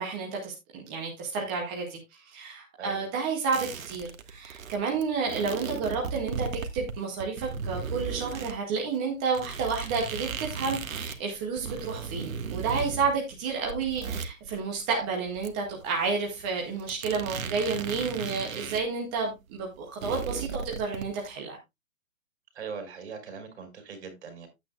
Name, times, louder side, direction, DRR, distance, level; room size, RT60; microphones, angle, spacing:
voice 1, 0.0-21.6, right 5 dB, 5° right, 0.5 m, -31 dB
sound 1, 3.5-8.5 8.9-9.0 9.3-18.9 19.2-19.3 19.5-21.3, right 6 dB, 70° right, 1.6 m, -36 dB
voice 2, 22.5-24.5, right 5 dB, 50° right, 4.7 m, -40 dB
11.5 x 8.8 x 2.3 m
hypercardioid pair, 155°, 42 cm